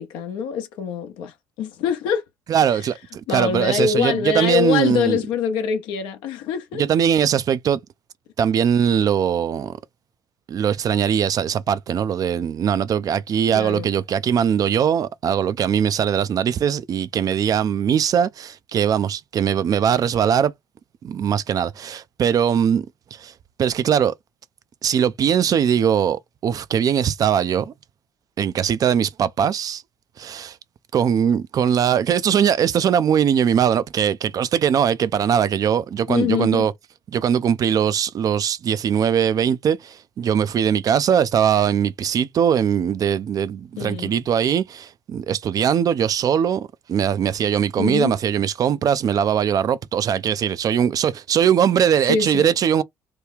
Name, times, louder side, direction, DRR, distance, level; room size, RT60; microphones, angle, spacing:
voice 1, 0.0-2.2 3.3-6.8 13.5-13.9 36.1-36.7 43.8-44.1 47.8-48.1 52.1-52.5, left 7 dB, 75° left, 0.7 m, -24 dB
voice 2, 2.5-5.2 6.7-7.8 8.4-9.8 10.5-20.5 21.0-22.9 23.1-23.3 23.6-24.1 24.8-27.7 28.4-29.8 30.2-30.6 30.9-36.7 37.1-52.8, right 8 dB, 45° right, 0.4 m, -20 dB
3.0 x 2.2 x 3.5 m
hypercardioid pair, 65°, 8 cm